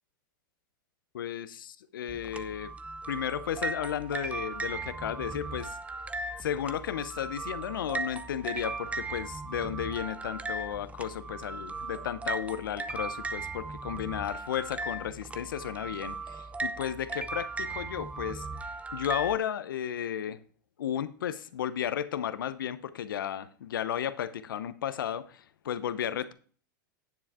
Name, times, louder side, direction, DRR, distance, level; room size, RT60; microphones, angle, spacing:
voice 1, 1.1-2.7 3.1-5.8 6.4-20.4 20.8-26.3, left 9 dB, 75° left, 0.8 m, -34 dB
sound 1, 2.1-19.4, right 3 dB, 10° right, 0.6 m, -37 dB
9.7 x 7.2 x 3.7 m
hypercardioid pair, 105°, 11 cm